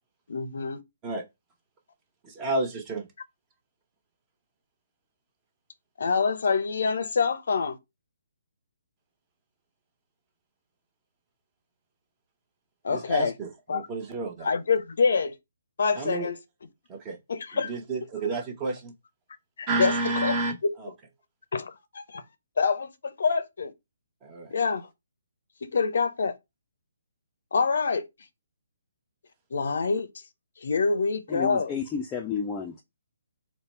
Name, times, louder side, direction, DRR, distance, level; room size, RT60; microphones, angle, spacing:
voice 1, 0.3-0.8 6.0-7.8 12.8-13.3 13.7-13.9 14.4-15.4 15.8-16.4 17.3-17.7 19.6-19.9 20.2-20.4 20.6-20.7 21.5-22.2 22.6-23.7 24.5-24.9 25.6-26.4 27.5-28.0 29.5-30.1 30.6-31.7, left 5 dB, 55° left, 0.6 m, -26 dB
voice 2, 2.2-3.1 12.9-14.5 16.0-16.3 16.9-17.2 17.5-18.9 19.7-20.9 24.2-24.5, right 2 dB, 20° right, 0.9 m, -31 dB
voice 3, 31.3-32.8, left 6 dB, 15° left, 0.5 m, -31 dB
4.0 x 2.2 x 4.3 m
figure-of-eight pair, 135°, 0 cm